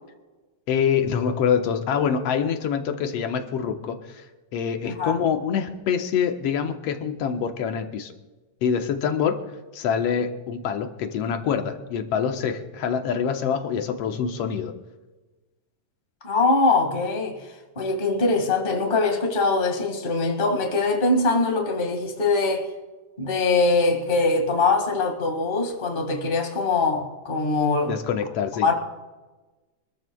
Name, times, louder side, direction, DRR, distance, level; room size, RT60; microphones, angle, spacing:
voice 1, 0.7-4.2 4.5-8.1 8.6-9.4 9.7-14.7 27.9-28.7, left 7 dB, 65° left, 1.9 m, -25 dB
voice 2, 16.2-17.4 17.7-22.7 23.2-27.9 28.6-28.7, left 3 dB, 20° left, 1.5 m, -22 dB
24.5 x 14.0 x 2.3 m
omnidirectional pair, 3.4 m